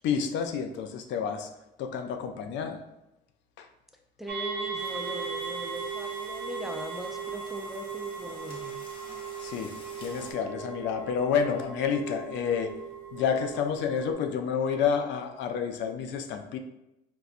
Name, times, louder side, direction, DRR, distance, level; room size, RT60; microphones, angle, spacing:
voice 1, 0.0-1.5 1.8-2.8 3.6-3.7 9.4-12.7 13.1-16.6, left 7 dB, 70° left, 6 dB, 0.4 m, -29 dB
voice 2, 4.2-8.8, left 1 dB, ahead, 3 dB, 0.3 m, -40 dB
sound 1, 4.3-14.1, right 6 dB, 65° right, 0.9 m, -38 dB
sound 2, 4.7-10.3, left 1 dB, 25° left, 0.9 m, -49 dB
4.0 x 2.3 x 2.5 m, 0.88 s
cardioid pair, 90°, 19 cm